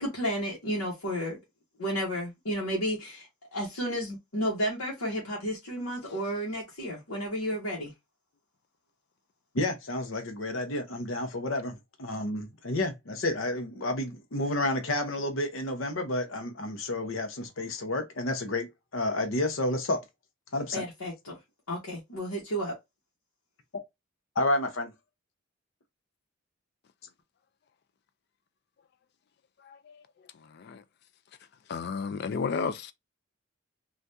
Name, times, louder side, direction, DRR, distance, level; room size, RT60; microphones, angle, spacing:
voice 1, 0.0-1.4 1.8-7.9 20.7-21.4 21.7-22.7, equal, 85° left, 1.1 m, -32 dB
voice 2, 9.5-18.7 18.9-20.0 20.5-20.8 24.4-24.9, left 2 dB, 70° left, 0.8 m, -30 dB
voice 3, 29.6-30.1 30.3-30.8 31.7-32.9, left 5 dB, 50° left, 0.3 m, -33 dB
3.3 x 2.5 x 2.6 m
head